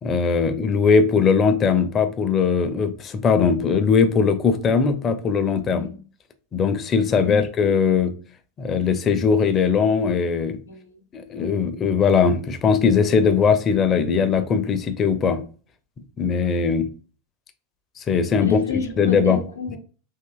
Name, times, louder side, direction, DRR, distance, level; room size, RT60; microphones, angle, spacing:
voice 1, 0.0-5.9 6.5-8.1 8.6-10.6 11.1-15.4 16.2-16.9 18.0-18.6 19.0-19.4, left 6 dB, 30° left, 9 dB, 0.5 m, -20 dB
voice 2, 10.7-11.1 18.4-19.8, left 4 dB, 85° left, 3 dB, 0.7 m, -30 dB
3.5 x 2.7 x 2.3 m, 0.38 s
figure-of-eight pair, 85°, 0 cm